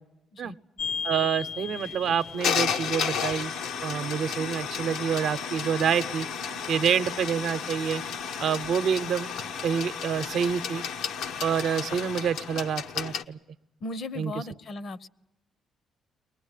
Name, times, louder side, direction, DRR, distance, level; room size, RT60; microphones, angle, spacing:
sound 1, 0.8-13.2, left 7 dB, 85° left, 0.9 m, -32 dB
voice 1, 1.0-3.5 3.8-6.3 6.7-8.0 8.4-9.3 9.6-10.8 11.4-13.4 14.2-14.3, right 7 dB, 70° right, 11 dB, 0.8 m, -27 dB
voice 2, 13.8-15.1, left 2 dB, 55° left, 16 dB, 0.8 m, -37 dB
23.0 x 19.5 x 9.8 m, 0.98 s
cardioid pair, 90°, 0 cm